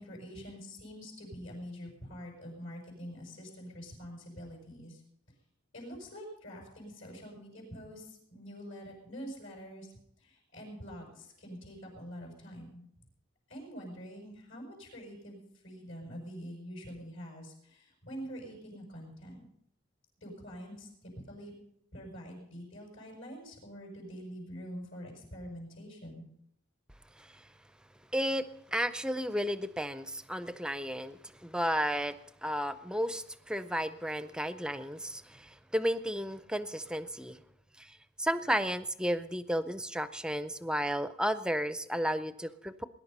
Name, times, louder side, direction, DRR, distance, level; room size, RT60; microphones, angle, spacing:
voice 1, 0.0-5.0 5.7-9.9 10.2-12.9 13.5-19.4 20.2-21.5 21.9-26.3, equal, 75° left, -2 dB, 6.1 m, -45 dB
voice 2, 28.1-37.4 37.8-42.8, equal, 5° right, 13 dB, 0.5 m, -33 dB
20.0 x 11.0 x 5.4 m, 0.75 s
head